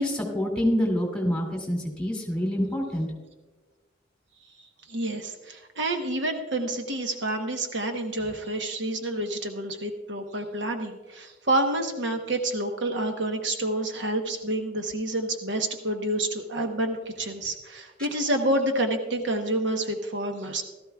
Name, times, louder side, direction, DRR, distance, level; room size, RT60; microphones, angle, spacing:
voice 1, 0.0-3.1, equal, 5° left, -1 dB, 2.4 m, -26 dB
voice 2, 4.9-20.6, right 1 dB, 70° right, 4 dB, 1.0 m, -28 dB
16.5 x 13.5 x 2.3 m, 1.2 s
head